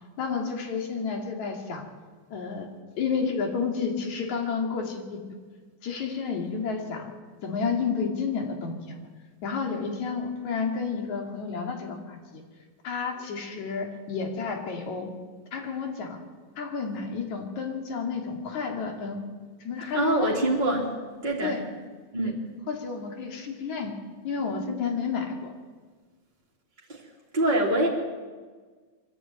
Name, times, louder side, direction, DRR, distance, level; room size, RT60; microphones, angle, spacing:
voice 1, 0.2-1.9 2.3-2.7 3.0-5.2 5.8-7.1 7.4-9.1 9.4-12.4 12.8-15.2 15.5-16.2 16.6-19.3 19.6-20.4 21.4-21.6 22.2-22.3 22.7-23.9 24.2-25.5, left 5 dB, 75° left, 3 dB, 3.8 m, -31 dB
voice 2, 19.9-20.9 21.2-21.5 22.1-22.4 26.9-27.0 27.3-27.9, right 1 dB, 15° right, -4 dB, 3.1 m, -24 dB
23.0 x 14.0 x 9.1 m, 1.4 s
omnidirectional pair, 3.3 m